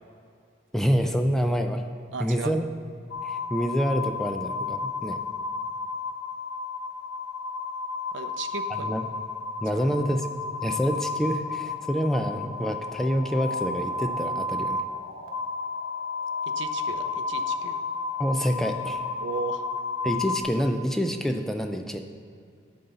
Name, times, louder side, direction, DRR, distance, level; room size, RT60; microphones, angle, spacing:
voice 1, 0.7-1.8 2.2-2.7 3.2-5.2 8.7-9.0 9.6-10.3 10.6-14.8 18.2-19.0 20.0-22.0, equal, ahead, 5 dB, 0.4 m, -27 dB
voice 2, 2.1-2.5 8.1-8.9 9.7-9.8 16.5-17.8 19.2-19.6, right 4 dB, 70° right, 9 dB, 0.5 m, -35 dB
sound 1, 3.1-20.4, left 4 dB, 70° left, 0.9 m, -32 dB
11.0 x 4.0 x 6.7 m, 2.4 s
head